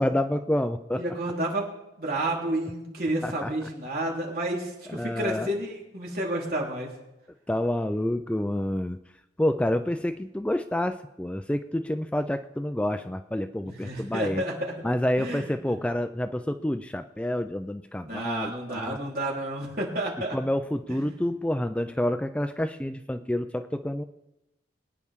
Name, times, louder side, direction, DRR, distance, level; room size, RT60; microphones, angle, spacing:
voice 1, 0.0-1.0 3.2-3.5 4.9-5.5 7.5-9.0 9.4-14.4 14.8-19.0 20.3-24.0, left 1 dB, 5° left, 9 dB, 0.4 m, -28 dB
voice 2, 1.0-1.6 2.0-6.9 13.6-14.7 15.2-15.7 18.0-20.4 20.9-21.0, right 1 dB, 55° right, -3 dB, 3.9 m, -30 dB
23.5 x 9.7 x 3.7 m, 0.93 s
head